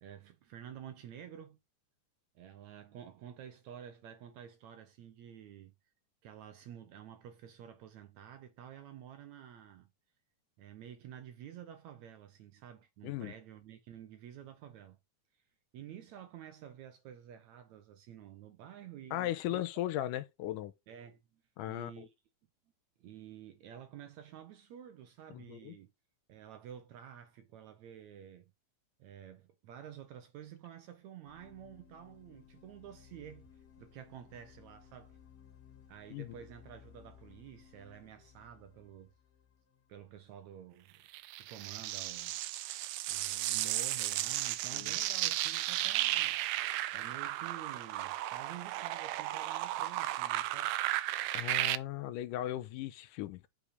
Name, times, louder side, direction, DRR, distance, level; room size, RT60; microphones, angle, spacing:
voice 1, 0.0-1.6 2.4-5.7 6.2-9.9 10.6-15.0 15.7-19.6 20.9-21.4 21.7-22.1 23.0-25.9 26.3-28.5 29.0-33.5 33.8-35.2 35.9-39.1 39.9-41.0 41.4-42.4 43.1-46.4 46.9-50.8, right 9 dB, 70° right, 2.0 m, -50 dB
voice 2, 19.1-20.7 21.6-22.1 25.3-25.7 36.1-36.3 44.7-44.9 51.3-53.5, left 13 dB, 85° left, 2.2 m, -37 dB
sound 1, 31.3-41.1, left 9 dB, 60° left, 2.6 m, -60 dB
sound 2, 41.1-51.8, right 15 dB, 90° right, 1.5 m, -34 dB
6.6 x 4.9 x 5.1 m
omnidirectional pair, 3.7 m